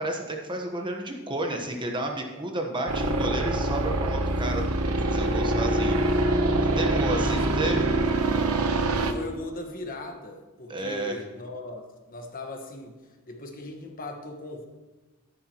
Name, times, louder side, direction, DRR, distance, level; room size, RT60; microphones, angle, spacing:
voice 1, 0.0-6.0 6.8-7.9 10.7-11.2, right 2 dB, 20° right, 2 dB, 1.2 m, -31 dB
sound 1, 2.9-9.1, right 2 dB, 85° right, 1.0 m, -24 dB
voice 2, 9.1-13.0 13.3-14.7, left 2 dB, 40° left, 3 dB, 1.4 m, -39 dB
14.5 x 11.0 x 3.0 m, 1.2 s
head